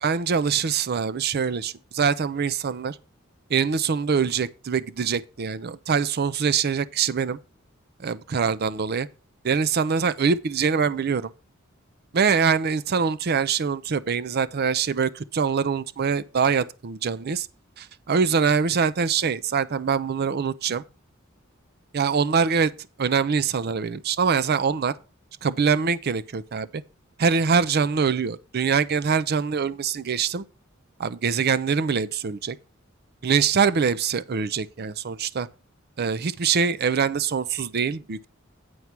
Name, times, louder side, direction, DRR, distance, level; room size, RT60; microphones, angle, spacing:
voice 1, 0.0-3.0 3.5-7.4 8.0-9.1 9.4-11.3 12.1-17.5 17.8-20.8 21.9-22.7 23.0-24.9 25.4-26.8 27.2-30.4 31.0-32.6 33.2-35.5 36.0-38.3, right 6 dB, 50° right, 0.5 m, -24 dB
9.5 x 4.7 x 5.8 m
head